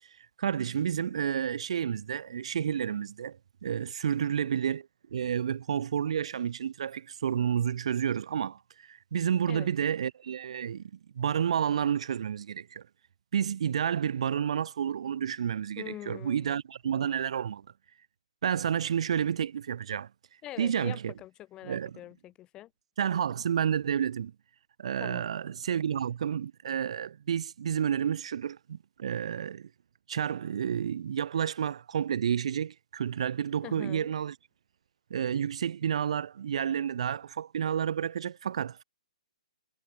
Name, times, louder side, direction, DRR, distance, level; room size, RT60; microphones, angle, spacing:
voice 1, 0.4-3.4 3.6-10.8 11.1-12.8 13.3-17.6 18.4-20.1 20.6-21.1 21.6-22.0 23.0-24.3 24.8-29.7 30.1-34.3 35.1-38.8, right 8 dB, 55° right, 3.4 m, -30 dB
voice 2, 4.2-4.5 9.5-9.7 15.8-16.5 20.4-22.7 25.0-25.2 33.6-34.1, left 14 dB, 20° left, 4.2 m, -44 dB
figure-of-eight pair, 135°, 4 cm